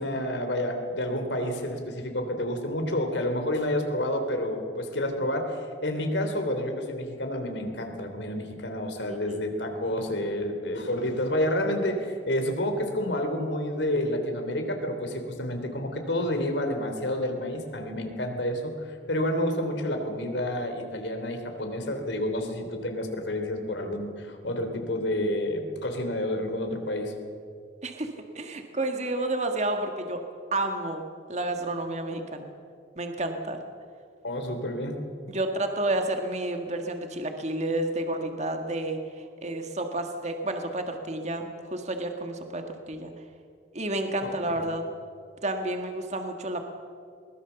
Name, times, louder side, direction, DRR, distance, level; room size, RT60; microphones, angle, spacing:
voice 1, 0.0-27.1 34.2-35.0, left 1 dB, 80° left, 5 dB, 3.4 m, -29 dB
voice 2, 9.1-9.4 27.8-28.1 28.3-30.2 30.5-31.0 31.3-32.5 33.0-33.6 35.3-43.1 43.7-44.9 45.4-46.7, right 1 dB, 40° right, 5 dB, 1.7 m, -30 dB
22.0 x 20.5 x 7.0 m, 2.3 s
head